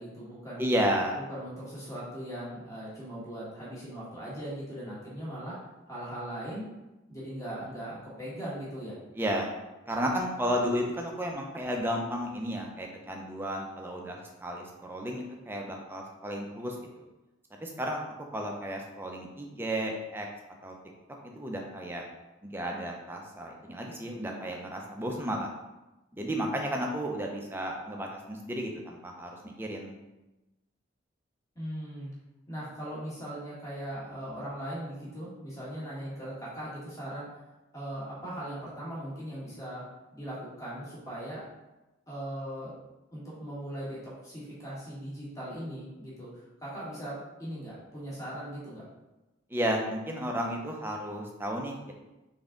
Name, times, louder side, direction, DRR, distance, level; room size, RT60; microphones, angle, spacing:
voice 1, 0.0-0.6 1.3-5.5 5.9-6.7 7.1-9.0 31.5-32.1 32.5-37.3 37.7-39.8 40.1-41.4 42.1-42.7 43.1-44.0 44.2-46.3 46.6-48.8, right 1 dB, 15° left, -8 dB, 1.5 m, -39 dB
voice 2, 0.6-1.2 9.2-9.5 9.9-17.0 17.6-20.3 20.6-20.7 21.2-22.0 22.4-25.5 26.1-30.0 49.5-51.9, equal, 10° right, 0 dB, 0.5 m, -33 dB
4.0 x 3.4 x 3.7 m, 1.0 s
head